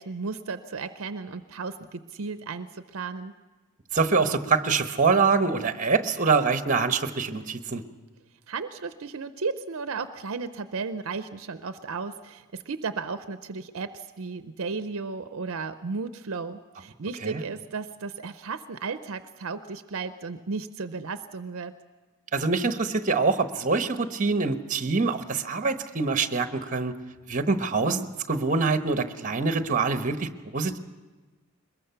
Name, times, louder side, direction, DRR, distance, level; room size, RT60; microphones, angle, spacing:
voice 1, 0.0-3.3 8.5-21.7, right 4 dB, 65° right, 10 dB, 0.6 m, -34 dB
voice 2, 3.9-7.8 17.2-17.4 22.3-26.9 27.3-30.8, right 4 dB, 35° right, 8 dB, 1.0 m, -25 dB
22.0 x 21.0 x 5.8 m, 1.3 s
head